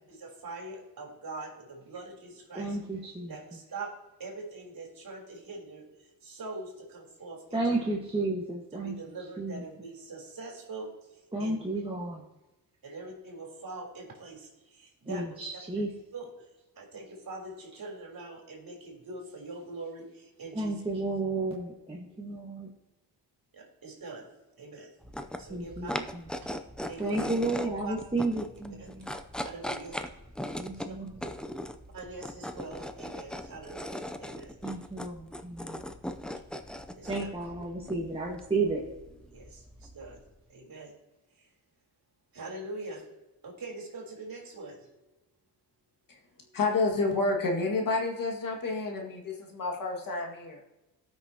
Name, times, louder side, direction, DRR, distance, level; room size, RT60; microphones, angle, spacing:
voice 1, 0.1-2.8 3.3-3.9 4.2-7.8 8.7-11.8 12.8-15.2 16.1-16.3 16.8-20.8 23.5-24.2 24.6-24.9 25.4-26.0 26.4-26.6 26.9-27.2 27.8-27.9 28.8-28.9 29.4-30.1 31.9-34.6 37.0-37.3 39.3-40.2 40.5-40.9 41.4-41.5 42.3-43.1 43.4-45.1 46.4-46.6, right 3 dB, 55° right, 0 dB, 3.7 m, -43 dB
voice 2, 2.5-3.3 7.5-8.9 9.4-9.6 11.3-12.2 15.1-15.9 20.5-22.7 25.5-25.9 26.1-26.2 27.0-29.1 30.5-31.0 34.6-35.8 37.1-38.8, right 2 dB, 15° right, -3 dB, 1.5 m, -32 dB
sound 1, 25.0-40.4, left 1 dB, ahead, 0.5 m, -40 dB
voice 3, 46.5-50.6, left 3 dB, 50° left, 0 dB, 2.0 m, -29 dB
18.5 x 6.2 x 2.9 m, 1.0 s
cardioid pair, 115°, 41 cm